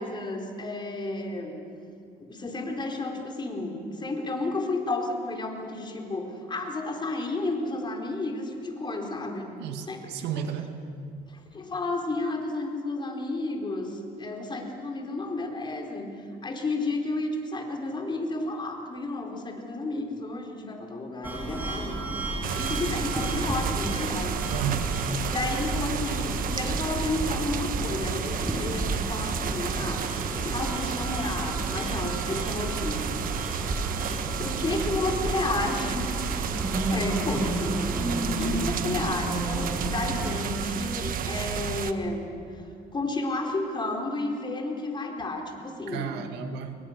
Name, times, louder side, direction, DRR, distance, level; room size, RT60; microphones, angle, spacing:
voice 1, 0.0-1.6 2.2-9.5 9.9-10.1 11.5-16.1 16.4-22.0 22.6-24.4 25.2-33.0 34.4-36.1 36.9-37.8 38.4-42.3 42.9-46.2, left 2 dB, 25° left, 2 dB, 4.4 m, -32 dB
voice 2, 9.6-10.8 24.5-25.0 37.3-37.5 45.9-46.8, right 9 dB, 85° right, 6 dB, 2.2 m, -33 dB
sound 1, 21.2-40.4, right 1 dB, 10° right, 6.0 m, -32 dB
sound 2, 22.4-41.9, right 9 dB, 55° right, 1.3 m, -32 dB
29.5 x 23.0 x 6.7 m, 2.4 s
cardioid pair, 110°, 17 cm